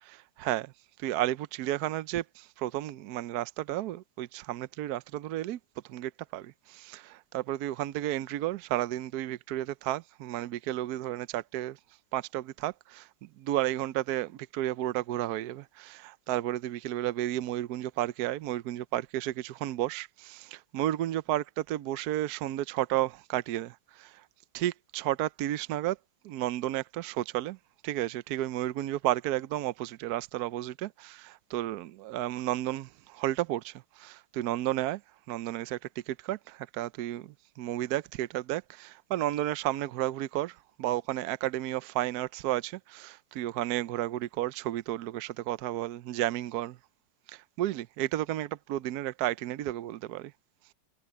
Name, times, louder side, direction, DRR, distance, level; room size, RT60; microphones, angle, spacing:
voice 1, 0.1-0.7 1.0-5.6 5.9-11.8 12.1-13.1 13.4-24.2 24.5-26.0 26.2-27.6 27.8-35.0 35.3-35.8 36.1-46.8 47.3-50.3, right 14 dB, 70° right, 1.1 m, -32 dB
omnidirectional pair, 1.9 m